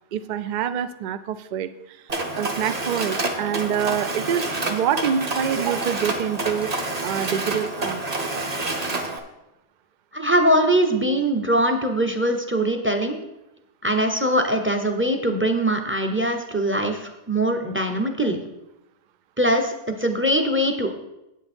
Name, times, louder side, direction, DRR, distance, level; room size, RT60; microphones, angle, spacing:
voice 1, 0.1-6.7 7.0-8.0, right 8 dB, 75° right, 13 dB, 0.4 m, -26 dB
Mechanisms, 2.1-9.2, right 2 dB, 35° right, 0.9 m, -28 dB
voice 2, 10.1-13.2 13.8-18.4 19.4-20.9, right 1 dB, 10° right, 5 dB, 0.6 m, -22 dB
8.6 x 8.2 x 4.4 m, 0.91 s
omnidirectional pair, 1.3 m